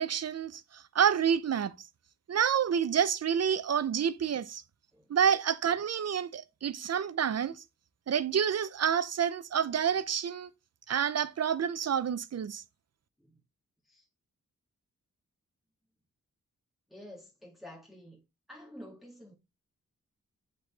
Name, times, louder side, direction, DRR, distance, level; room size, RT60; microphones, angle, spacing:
voice 1, 0.0-1.7 2.3-4.6 5.1-7.6 8.1-10.5 10.9-12.6, right 8 dB, 55° right, 0.6 m, -28 dB
voice 2, 16.9-18.2 18.5-19.3, left 1 dB, ahead, 1.9 m, -49 dB
7.7 x 4.1 x 3.5 m
wide cardioid pair, 110°, 31 cm